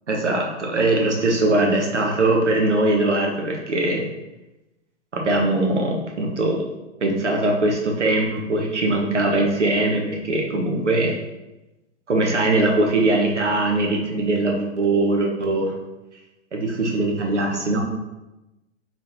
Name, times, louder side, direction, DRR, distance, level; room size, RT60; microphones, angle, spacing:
voice 1, 0.1-4.0 5.1-6.6 7.0-11.2 12.1-15.7 16.5-17.8, right 2 dB, 80° right, 0 dB, 1.1 m, -21 dB
4.0 x 3.9 x 2.9 m, 1.0 s
figure-of-eight pair, 115°, 35 cm